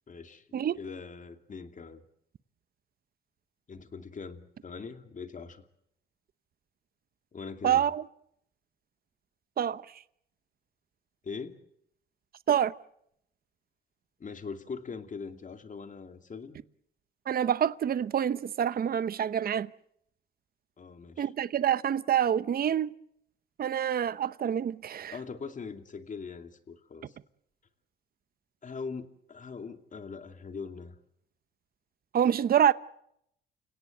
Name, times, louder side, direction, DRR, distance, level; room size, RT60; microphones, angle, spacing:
voice 1, 0.1-0.5 0.8-2.0 3.7-5.6 7.3-7.9 11.2-11.6 14.2-16.6 20.8-21.3 25.1-27.2 28.6-30.9, left 5 dB, 40° left, 2.7 m, -41 dB
voice 2, 7.6-8.0 9.6-9.8 12.5-12.7 17.3-19.7 21.2-22.9 23.6-25.1 32.1-32.7, right 9 dB, 50° right, 0.9 m, -26 dB
30.0 x 17.5 x 8.0 m
cardioid pair, 90°, 20 cm